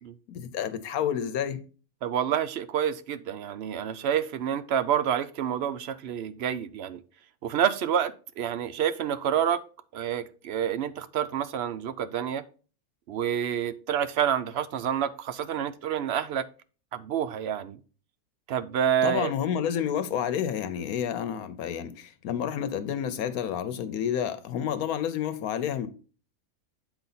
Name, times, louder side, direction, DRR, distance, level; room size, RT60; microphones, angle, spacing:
voice 1, 0.3-1.6 19.0-25.9, left 9 dB, 90° left, 1.2 m, -30 dB
voice 2, 2.0-7.0 7.4-9.6 9.9-12.4 13.1-16.4 16.9-17.8 18.5-19.3, right 9 dB, 65° right, 0.6 m, -28 dB
8.7 x 4.1 x 4.0 m
omnidirectional pair, 1.5 m